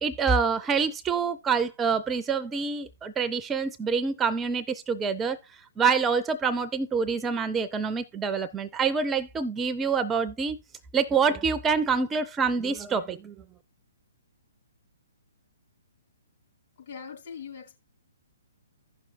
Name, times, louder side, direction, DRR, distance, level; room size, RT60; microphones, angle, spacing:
voice 1, 0.0-5.4 5.8-10.6 10.9-13.4, right 5 dB, 15° right, 0.4 m, -26 dB
voice 2, 16.8-17.8, left 6 dB, 50° left, 2.9 m, -41 dB
15.5 x 6.0 x 2.5 m
figure-of-eight pair, 125°, 0 cm